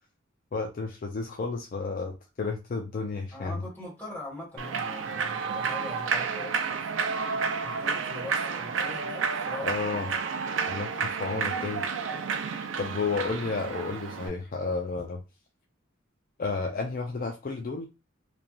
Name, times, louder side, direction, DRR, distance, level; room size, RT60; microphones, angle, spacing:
voice 1, 0.5-3.6 9.6-10.1 10.7-11.8 12.8-15.2 16.4-17.9, left 4 dB, 45° left, 3 dB, 0.4 m, -32 dB
voice 2, 3.3-6.8 7.6-9.7, left 2 dB, 10° left, -5 dB, 1.4 m, -41 dB
Human voice / Clapping / Cheering, 4.6-14.3, right 5 dB, 70° right, 0.4 m, -31 dB
3.1 x 2.3 x 2.5 m, 0.27 s
head